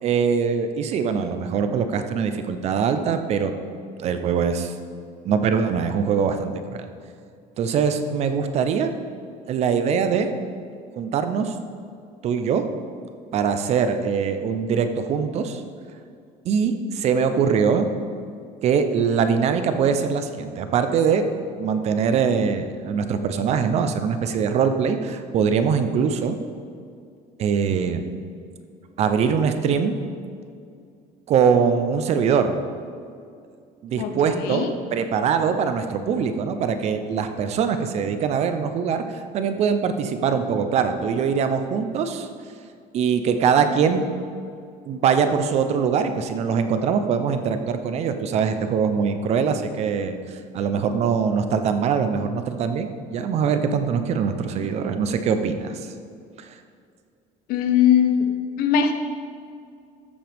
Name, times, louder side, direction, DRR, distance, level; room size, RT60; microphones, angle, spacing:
voice 1, 0.0-3.5 4.0-4.7 5.2-6.9 7.6-8.9 9.5-10.3 11.0-11.5 12.2-12.6 13.3-15.6 16.4-17.9 18.6-21.2 21.6-26.4 27.4-28.1 29.0-29.9 31.3-32.5 33.8-39.0 39.3-42.3 42.9-44.0 44.9-50.2 50.5-55.7 56.4-56.5, right 6 dB, 40° right, 8 dB, 0.7 m, -22 dB
voice 2, 34.0-34.7 57.5-58.2 58.6-58.9, left 8 dB, 70° left, 7 dB, 0.9 m, -20 dB
13.5 x 7.5 x 3.5 m, 2.3 s
cardioid pair, 165°, 16 cm